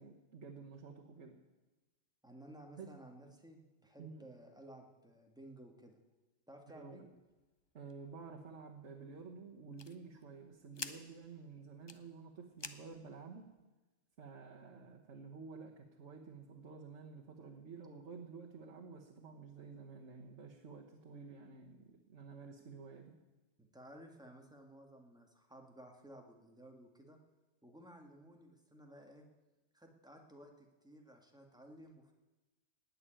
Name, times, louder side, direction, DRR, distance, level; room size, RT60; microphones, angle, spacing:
voice 1, 0.0-1.4 2.8-2.9 4.0-4.3 6.7-7.1 7.7-13.5 14.2-23.2, right 5 dB, 65° right, 0 dB, 1.6 m, -51 dB
voice 2, 2.2-6.0 6.5-7.1 23.6-27.2 27.6-29.2 29.7-32.1, right 1 dB, 5° right, 2 dB, 1.9 m, -56 dB
sound 1, 7.1-13.6, left 4 dB, 30° left, 0.6 m, -52 dB
18.5 x 6.9 x 9.0 m, 1.1 s
omnidirectional pair, 1.3 m